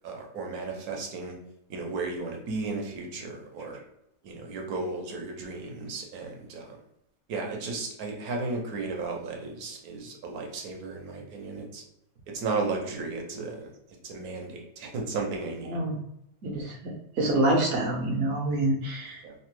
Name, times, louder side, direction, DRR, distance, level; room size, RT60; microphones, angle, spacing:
voice 1, 0.0-1.3 1.7-3.8 4.2-6.8 7.3-11.8 12.3-13.7 14.0-15.7 19.2-19.3, right 3 dB, 85° right, 1 dB, 1.2 m, -34 dB
voice 2, 16.4-19.2, right 1 dB, 70° right, 1 dB, 1.0 m, -27 dB
3.0 x 2.1 x 3.0 m, 0.82 s
omnidirectional pair, 1.5 m